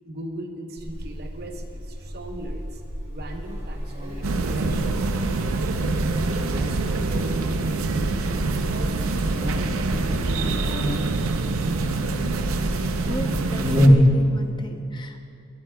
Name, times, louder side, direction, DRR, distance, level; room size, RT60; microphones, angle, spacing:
voice 1, 0.0-2.8 3.1-5.1 5.5-8.3 8.6-11.8, right 1 dB, 50° right, 4 dB, 0.9 m, -38 dB
Buzz, 0.8-13.9, equal, 30° right, 2.8 m, -29 dB
sound 1, 4.2-13.9, right 3 dB, 80° right, 0.6 m, -25 dB
voice 2, 12.7-15.2, left 1 dB, 20° left, 5 dB, 0.6 m, -36 dB
20.5 x 12.0 x 2.3 m, 2.4 s
head